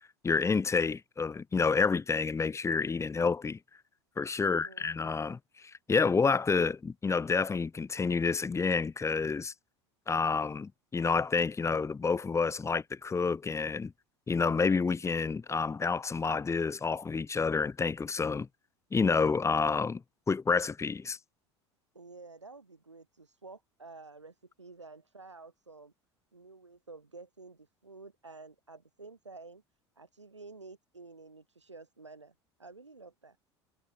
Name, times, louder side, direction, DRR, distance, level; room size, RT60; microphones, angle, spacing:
voice 1, 0.2-3.6 4.2-9.5 10.1-13.9 14.3-18.5 18.9-21.2, left 5 dB, 20° left, 4.1 m, -29 dB
voice 2, 4.4-4.9 21.9-25.9 26.3-29.6 30.0-32.3 32.6-33.4, right 3 dB, 90° right, 7.2 m, -51 dB
figure-of-eight pair, 75°, 15 cm